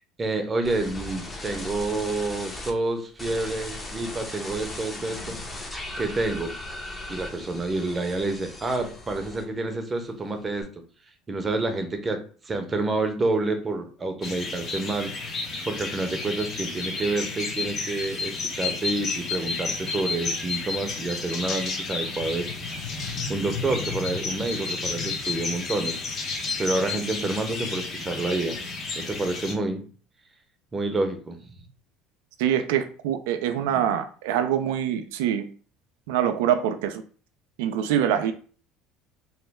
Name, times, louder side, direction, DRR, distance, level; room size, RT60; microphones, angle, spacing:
voice 1, 0.2-5.4 6.0-6.6 7.1-10.7 11.3-15.4 15.6-22.5 23.3-26.0 26.6-28.6 28.9-29.8 30.7-31.4, right 2 dB, 25° right, 6 dB, 0.7 m, -28 dB
sound 1, 0.6-2.7 3.2-9.7 10.0-10.6, left 2 dB, 20° left, 0.8 m, -38 dB
sound 2, 14.2-29.5, left 4 dB, 45° left, 1.0 m, -31 dB
voice 2, 32.4-35.4 36.1-37.0 37.6-38.3, right 10 dB, 80° right, 8 dB, 0.3 m, -24 dB
3.0 x 2.1 x 3.4 m, 0.40 s
supercardioid pair, 85°, 0 cm